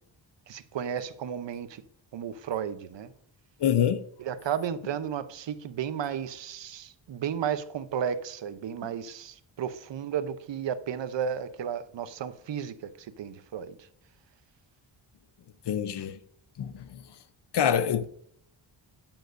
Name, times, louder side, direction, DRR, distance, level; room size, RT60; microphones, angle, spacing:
voice 1, 0.5-1.8 2.1-3.1 4.2-13.8, right 8 dB, 65° right, 0.8 m, -33 dB
voice 2, 3.6-4.0 15.7-16.2 16.6-17.0 17.5-18.0, left 9 dB, 60° left, 0.8 m, -26 dB
9.0 x 8.9 x 2.6 m
cardioid pair, 65°, 47 cm